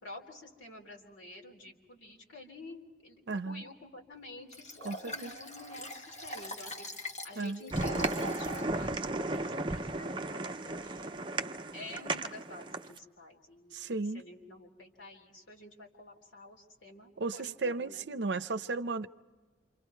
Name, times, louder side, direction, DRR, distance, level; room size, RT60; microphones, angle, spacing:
voice 1, 0.0-11.1 11.7-18.1, left 2 dB, 90° left, 3.5 m, -50 dB
voice 2, 3.3-3.6 4.8-5.3 7.4-7.6 13.7-14.2 17.2-19.1, right 3 dB, 70° right, 0.6 m, -34 dB
Liquid, 4.5-8.7 9.2-9.3, left 1 dB, 40° left, 1.7 m, -42 dB
sound 1, 7.7-13.0, right 2 dB, 25° right, 0.6 m, -35 dB
28.5 x 27.0 x 4.6 m
head